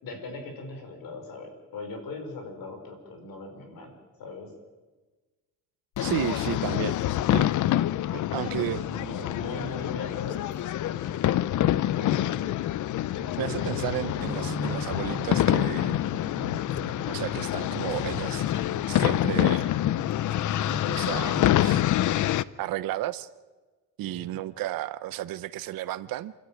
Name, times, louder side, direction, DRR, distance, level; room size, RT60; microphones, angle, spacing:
voice 1, 0.0-3.9 4.2-4.5 8.4-12.5 13.1-14.1 24.0-24.4, left 3 dB, 85° left, 5 dB, 5.3 m, -40 dB
sound 1, 6.0-22.4, left 13 dB, 60° left, 0.6 m, -26 dB
voice 2, 6.0-7.0 7.3-7.9 8.1-8.8 13.4-16.0 17.0-19.8 20.9-21.8 22.6-23.3 24.0-26.3, right 14 dB, 85° right, 13 dB, 0.8 m, -33 dB
sound 2, 13.3-21.7, right 1 dB, 10° left, 1.9 m, -40 dB
28.0 x 13.0 x 9.0 m, 1.3 s
cardioid pair, 145°, 34 cm